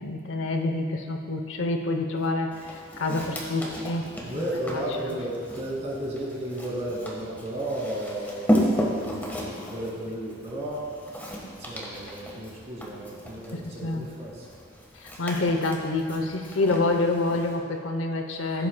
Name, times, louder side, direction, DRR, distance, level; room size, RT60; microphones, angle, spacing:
voice 1, 0.0-4.1 4.3-4.4 4.7-4.8 13.5-14.1 14.9-18.7, left 2 dB, 65° left, 5 dB, 0.7 m, -27 dB
Walk footsteps, 2.5-17.6, equal, 10° left, 1.3 m, -34 dB
voice 2, 4.2-11.3 11.6-14.5 18.4-18.6, right 1 dB, 30° right, -5 dB, 2.3 m, -34 dB
15.5 x 8.5 x 2.2 m, 2.4 s
head